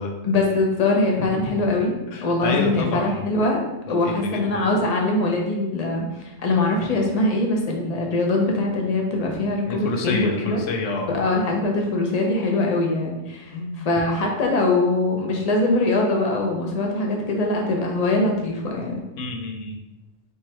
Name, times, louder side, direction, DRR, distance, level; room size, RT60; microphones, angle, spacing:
voice 1, 0.2-1.9 2.2-3.6 3.9-10.6 11.1-19.0, left 2 dB, 35° left, 0 dB, 0.8 m, -22 dB
voice 2, 2.1-3.2 3.9-4.6 9.7-11.1 13.5-13.9 19.2-19.8, left 3 dB, 75° left, 2 dB, 1.1 m, -28 dB
3.5 x 3.2 x 4.3 m, 0.95 s
omnidirectional pair, 1.3 m